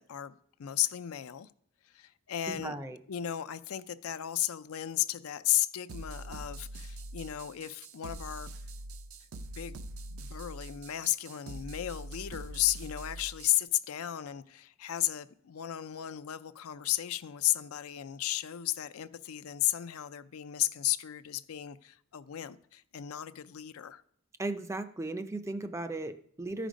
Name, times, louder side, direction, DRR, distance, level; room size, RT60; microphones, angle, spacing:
voice 1, 0.0-1.5 1.9-2.8 3.1-8.5 9.6-9.8 10.1-24.0, left 13 dB, 80° left, 0.4 m, -34 dB
voice 2, 2.5-3.0 24.4-26.7, right 2 dB, 15° right, 0.4 m, -36 dB
sound 1, 5.9-13.6, right 1 dB, 80° right, 0.6 m, -44 dB
13.0 x 5.1 x 5.1 m
head